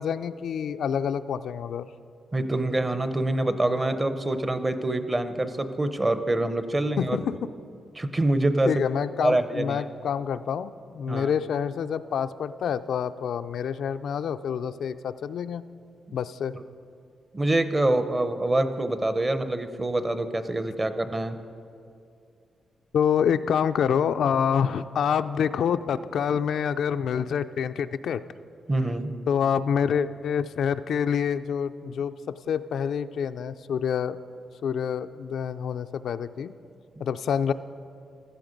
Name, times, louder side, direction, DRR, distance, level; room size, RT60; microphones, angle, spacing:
voice 1, 0.0-1.9 7.0-7.4 8.6-15.6 16.1-16.5 22.9-28.2 29.3-32.1 32.5-34.2 34.6-36.5 37.0-37.5, left 7 dB, 70° left, 10 dB, 0.4 m, -27 dB
voice 2, 2.3-7.2 7.9-8.7 9.2-9.8 11.1-11.3 16.1-16.2 16.5-16.6 17.3-21.4 28.7-29.1, right 2 dB, 20° right, 10 dB, 0.6 m, -25 dB
16.0 x 13.0 x 5.2 m, 2.4 s
wide cardioid pair, 160°, 0 cm